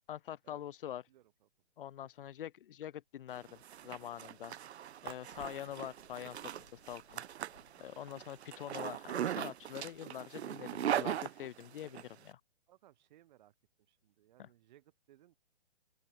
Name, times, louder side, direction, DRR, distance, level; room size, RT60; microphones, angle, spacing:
voice 1, 0.1-1.0 1.8-4.5 5.0-6.4 6.7-7.2 7.7-12.4 14.4-14.5, left 11 dB, 50° left, 0.9 m, -45 dB
voice 2, 1.1-1.5 2.2-2.3 11.9-12.1 12.7-13.5 13.9-15.4, right 13 dB, 40° right, 1.7 m, -64 dB
sound 1, 3.3-10.0, left 4 dB, 80° left, 3.2 m, -66 dB
Zipper (clothing), 3.4-12.0, right 10 dB, 70° right, 0.5 m, -40 dB
open air
figure-of-eight pair, 130°, 34 cm